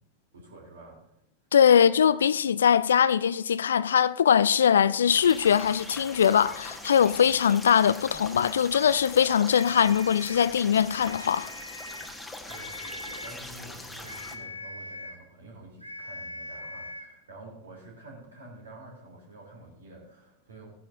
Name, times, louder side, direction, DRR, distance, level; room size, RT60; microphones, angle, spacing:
voice 1, 0.3-1.1 12.5-20.7, right 2 dB, 70° right, 3.5 m, -48 dB
voice 2, 1.5-11.5, left 8 dB, 65° left, 0.3 m, -21 dB
sound 1, 5.1-14.4, left 2 dB, 5° left, 1.3 m, -42 dB
sound 2, 9.4-10.5 10.9-12.2 12.5-13.4 14.0-15.3 15.8-17.2, left 2 dB, 90° right, 1.1 m, -42 dB
15.5 x 10.0 x 2.7 m
figure-of-eight pair, 90°, 0 cm